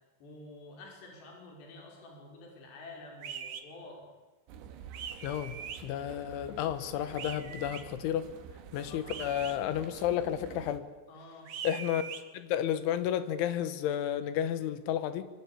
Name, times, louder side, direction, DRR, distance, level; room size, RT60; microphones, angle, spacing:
voice 1, 0.2-4.1 8.9-9.1 11.1-11.5, left 2 dB, 65° left, 1 dB, 7.3 m, -49 dB
sound 1, 3.2-3.6 4.9-5.8 7.2-7.8 9.1-9.6 11.5-12.2, right 8 dB, 60° right, 1.9 m, -41 dB
sound 2, 4.5-10.8, right 8 dB, 80° right, 4.0 m, -49 dB
voice 2, 5.2-5.6 5.8-8.3 8.7-10.9 11.6-12.0 12.3-15.3, left 10 dB, 85° left, 13 dB, 3.8 m, -32 dB
24.0 x 24.0 x 8.7 m, 1.2 s
omnidirectional pair, 5.3 m